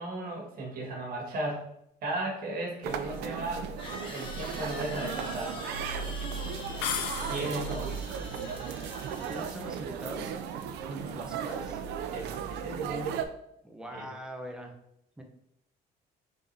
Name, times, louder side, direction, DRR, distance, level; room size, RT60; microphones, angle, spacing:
voice 1, 0.0-1.7 2.0-3.7 4.1-5.6 7.2-8.0 10.9-11.2 12.1-13.2 13.9-14.1, right 2 dB, 60° right, -1 dB, 1.7 m, -35 dB
sound 1, 2.2-2.3 3.8-9.9, left 2 dB, 30° left, 1.1 m, -45 dB
sound 2, 2.8-13.2, right 7 dB, 85° right, 0.5 m, -36 dB
sound 3, 6.8-7.9, left 8 dB, 90° left, 0.6 m, -34 dB
voice 2, 7.2-7.7 9.3-10.3 11.1-11.8 13.6-14.7 15.2-15.3, equal, 5° right, 2 dB, 0.8 m, -42 dB
5.2 x 3.7 x 2.7 m, 0.78 s
cardioid pair, 110°, 17 cm